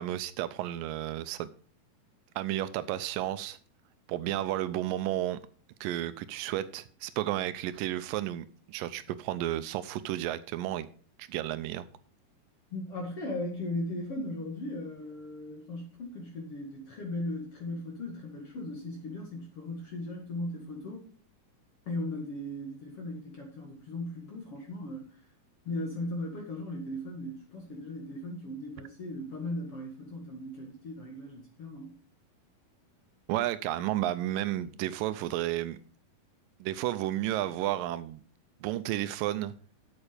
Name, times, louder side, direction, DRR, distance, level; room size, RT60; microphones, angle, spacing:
voice 1, 0.0-1.5 2.4-3.6 4.1-5.4 5.8-10.9 11.2-11.9 33.3-35.8 36.6-38.2 38.6-39.5, right 13 dB, 80° right, 14 dB, 2.2 m, -32 dB
voice 2, 12.7-21.0 21.9-25.2 25.7-31.9, left 1 dB, 45° left, 0 dB, 2.5 m, -37 dB
8.4 x 8.1 x 5.1 m, 0.43 s
omnidirectional pair, 4.1 m